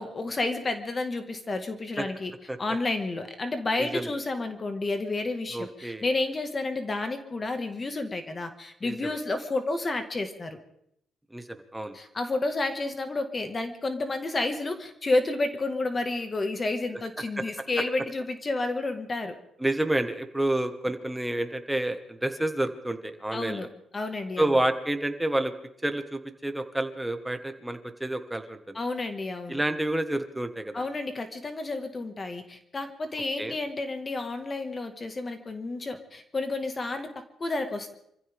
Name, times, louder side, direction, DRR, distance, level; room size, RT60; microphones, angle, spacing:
voice 1, 0.0-2.3 2.6-10.6 11.9-19.4 23.3-23.7 23.9-24.5 28.7-29.6 30.7-37.9, left 2 dB, 30° left, 7 dB, 1.8 m, -30 dB
voice 2, 3.8-4.1 5.5-6.0 8.8-9.2 11.3-12.0 17.4-17.5 19.6-23.7 24.4-25.5 25.8-28.8 29.5-30.9 33.4-33.6, right 1 dB, 5° right, 7 dB, 1.6 m, -29 dB
26.0 x 15.0 x 3.6 m, 0.74 s
cardioid pair, 90°, 0 cm